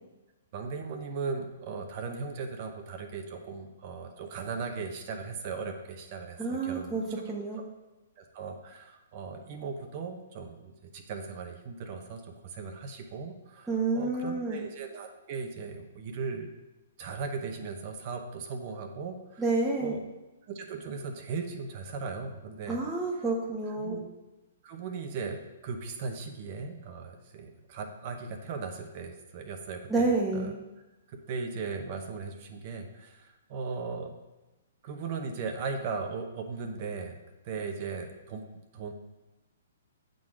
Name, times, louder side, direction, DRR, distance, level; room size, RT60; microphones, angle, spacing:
voice 1, 0.5-7.2 8.2-16.5 17.0-19.4 19.8-20.0 20.5-22.8 23.8-24.1 24.6-30.5 31.1-34.1 34.8-37.1 37.4-38.5 38.7-38.9, right 4 dB, 45° right, 4 dB, 0.9 m, -38 dB
voice 2, 6.4-7.0 7.3-7.6 13.7-14.6 19.4-20.0 22.7-24.0 29.9-30.6, right 3 dB, 5° right, -6 dB, 0.9 m, -29 dB
7.3 x 3.9 x 4.9 m, 1.1 s
hypercardioid pair, 135°, 0 cm